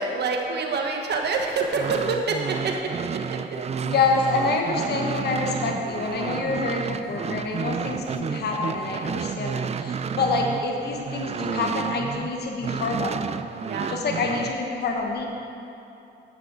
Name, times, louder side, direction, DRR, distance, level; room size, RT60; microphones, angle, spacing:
voice 1, 0.0-2.9 3.8-3.9 5.5-5.6 13.6-14.0, right 4 dB, 55° right, 2 dB, 1.4 m, -26 dB
sound 1, 1.6-12.3 12.6-14.5, right 6 dB, 35° right, 0.4 m, -31 dB
voice 2, 3.8-13.5 13.9-15.3, left 3 dB, 55° left, 1 dB, 1.3 m, -27 dB
9.6 x 7.8 x 6.2 m, 2.8 s
cardioid pair, 90°, 20 cm